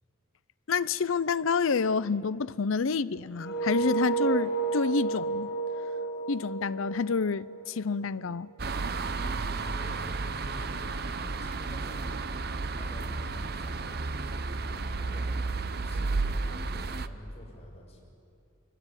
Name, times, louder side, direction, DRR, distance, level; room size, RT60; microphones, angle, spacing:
voice 1, 0.7-5.5 6.3-8.5, left 5 dB, 80° left, 0.6 m, -28 dB
sound 1, 3.4-8.2, right 5 dB, 50° left, 1.9 m, -31 dB
sound 2, 8.6-17.1, right 3 dB, 50° right, 0.9 m, -32 dB
voice 2, 9.1-11.0 11.4-12.4 12.8-14.0 14.4-18.0, equal, 30° left, 6.7 m, -47 dB
26.0 x 22.5 x 9.8 m
head